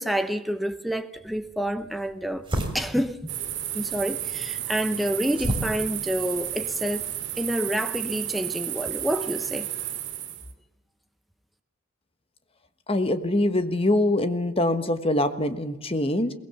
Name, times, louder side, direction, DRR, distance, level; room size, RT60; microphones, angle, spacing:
voice 1, 0.0-2.4 2.7-3.3 3.7-9.7, equal, ahead, 0.6 m, -28 dB
sound 1, 1.2-7.5, right 1 dB, 25° right, 3.4 m, -35 dB
sound 2, 3.3-10.5, right 12 dB, 55° right, 2.2 m, -32 dB
voice 2, 12.9-16.3, left 1 dB, 25° left, 1.3 m, -24 dB
22.5 x 19.5 x 7.1 m
head